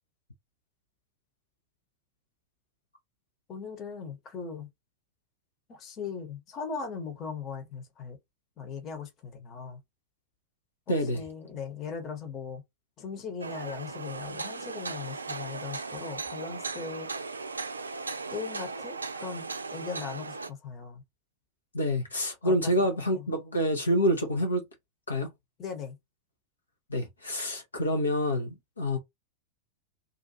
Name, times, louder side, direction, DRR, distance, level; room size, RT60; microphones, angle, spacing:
voice 1, 3.5-4.7 5.7-8.2 8.6-9.8 10.9-12.6 13.0-17.1 18.3-21.0 22.4-23.3 25.6-26.0, left 5 dB, 30° left, 1.0 m, -39 dB
voice 2, 10.9-11.2 21.7-24.6 25.1-25.3 26.9-29.0, equal, 75° left, 0.8 m, -27 dB
sound 1, 13.4-20.5, right 4 dB, 75° right, 0.4 m, -37 dB
2.6 x 2.5 x 2.7 m
figure-of-eight pair, 90°, 0 cm